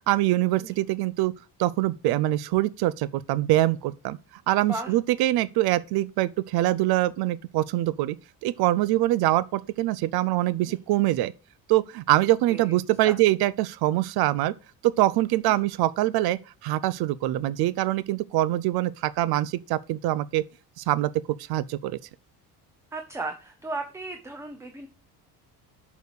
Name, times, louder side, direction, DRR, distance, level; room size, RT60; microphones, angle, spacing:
voice 1, 0.1-1.3 1.6-4.2 4.5-8.2 8.4-11.3 11.7-14.5 14.8-20.4 20.8-21.1 21.4-22.0, right 15 dB, 70° right, 0.5 m, -24 dB
voice 2, 22.9-24.9, right 2 dB, 5° right, 0.7 m, -35 dB
6.7 x 5.0 x 6.5 m
cardioid pair, 155°, 39 cm